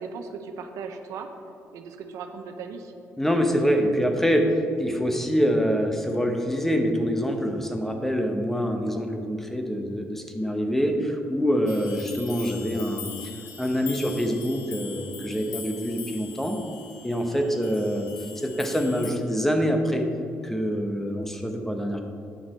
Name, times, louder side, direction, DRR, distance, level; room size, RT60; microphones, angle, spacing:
voice 1, 0.0-1.3 1.7-2.9 17.2-17.6, right 5 dB, 75° right, 6 dB, 0.7 m, -38 dB
voice 2, 3.2-13.1 13.6-16.6 17.0-18.1 18.4-20.1 20.4-22.0, equal, 5° left, 4 dB, 0.8 m, -25 dB
sound 1, 11.7-19.1, left 6 dB, 75° left, 0.9 m, -42 dB
9.3 x 5.9 x 4.3 m, 2.5 s
cardioid pair, 105°, 5 cm